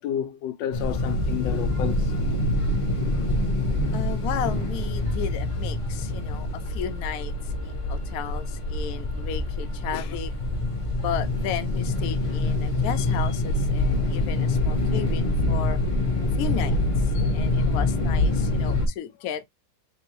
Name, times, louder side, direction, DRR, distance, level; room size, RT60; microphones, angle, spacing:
voice 1, 0.0-2.1, left 10 dB, 90° left, 1.3 m, -30 dB
sound 1, 0.7-18.9, left 2 dB, 50° left, 0.4 m, -25 dB
voice 2, 3.9-10.3 11.0-15.8 16.3-19.4, left 9 dB, 65° left, 1.0 m, -34 dB
3.9 x 3.4 x 3.0 m
omnidirectional pair, 1.9 m